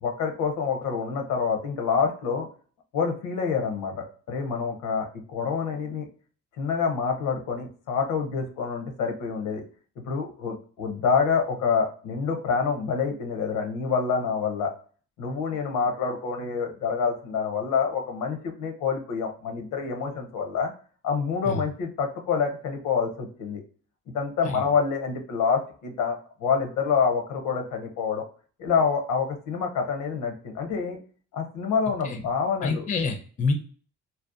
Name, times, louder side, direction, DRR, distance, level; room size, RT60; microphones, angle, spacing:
voice 1, 0.0-2.5 2.9-6.1 6.6-9.6 10.0-14.7 15.2-20.7 21.0-23.6 24.1-28.3 28.6-31.0 31.3-32.9, left 5 dB, 85° left, 4 dB, 0.6 m, -27 dB
voice 2, 32.6-33.5, left 4 dB, 25° left, 6 dB, 0.4 m, -27 dB
2.7 x 2.1 x 2.3 m, 0.42 s
cardioid pair, 90°, 30 cm